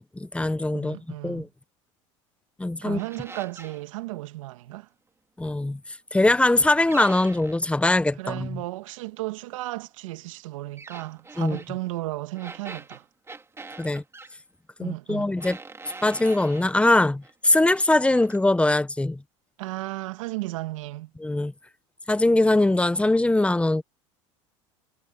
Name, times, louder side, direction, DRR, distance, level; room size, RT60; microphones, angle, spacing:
voice 1, 0.0-1.0 1.2-1.5 2.6-3.0 5.4-5.8 6.1-8.6 11.4-11.6 13.8-14.0 14.8-15.6 16.0-19.2 21.2-21.5 22.1-23.8, left 2 dB, 5° left, 1.0 m, -22 dB
voice 2, 0.7-1.5 2.8-4.9 8.2-13.1 14.8-15.3 19.6-21.1, right 18 dB, 80° right, 2.0 m, -34 dB
sound 1, 3.0-3.8 6.9-7.7 10.8-11.7 12.3-14.3 15.4-16.7 17.2-17.8 18.1-18.4, right 3 dB, 15° right, 2.5 m, -43 dB
hypercardioid pair, 95°, 16 cm